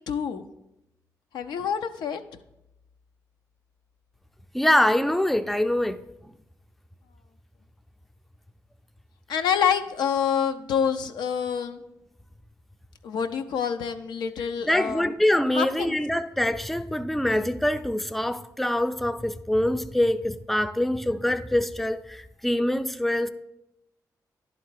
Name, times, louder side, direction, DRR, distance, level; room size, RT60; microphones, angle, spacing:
voice 1, 0.1-0.4 1.3-2.2 9.3-11.8 13.0-15.1 15.5-16.0, left 7 dB, 85° left, 0.5 m, -27 dB
voice 2, 4.5-6.0 14.7-23.3, left 1 dB, ahead, 0.4 m, -24 dB
10.5 x 3.8 x 4.6 m
cardioid pair, 65°, 7 cm